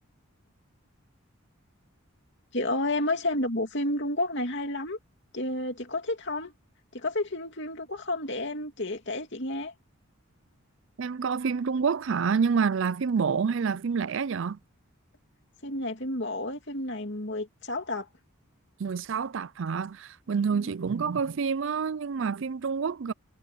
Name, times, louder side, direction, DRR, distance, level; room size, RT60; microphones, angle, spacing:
voice 1, 2.5-5.0 5.3-6.5 6.9-9.7 15.6-18.1 20.5-20.7, left 1 dB, 55° left, 2.9 m, -31 dB
voice 2, 11.0-14.6 18.8-23.1, right 5 dB, 60° right, 0.4 m, -28 dB
head